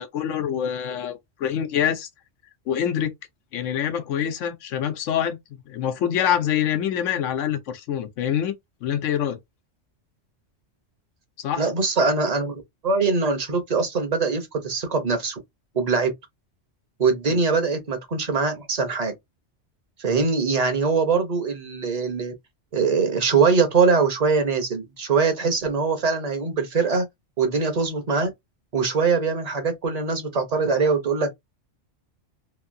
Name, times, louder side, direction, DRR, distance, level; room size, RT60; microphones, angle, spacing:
voice 1, 0.0-2.1 2.7-3.1 3.5-8.5 8.8-9.4 11.4-11.6, left 9 dB, 85° left, 1.0 m, -25 dB
voice 2, 11.6-15.4 15.7-16.1 17.0-19.1 20.0-22.3 22.7-27.0 27.4-28.3 28.7-31.3, right 4 dB, 40° right, 0.8 m, -22 dB
3.0 x 2.6 x 2.6 m
omnidirectional pair, 1.2 m